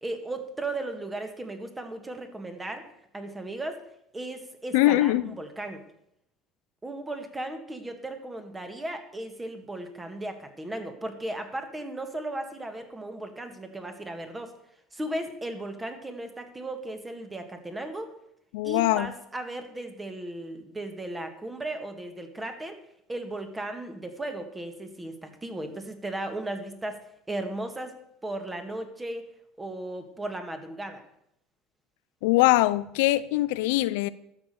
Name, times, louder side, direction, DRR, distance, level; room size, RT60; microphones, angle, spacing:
voice 1, 0.0-2.8 3.1-3.8 4.1-5.8 6.8-14.5 14.9-18.1 18.6-22.8 23.1-27.0 27.3-28.0 28.2-29.3 29.6-31.0, right 1 dB, 15° right, 1.8 m, -36 dB
voice 2, 4.7-5.3 18.5-19.1 32.2-34.1, left 17 dB, 90° left, 0.5 m, -22 dB
12.0 x 7.3 x 6.8 m
cardioid pair, 120°, 0 cm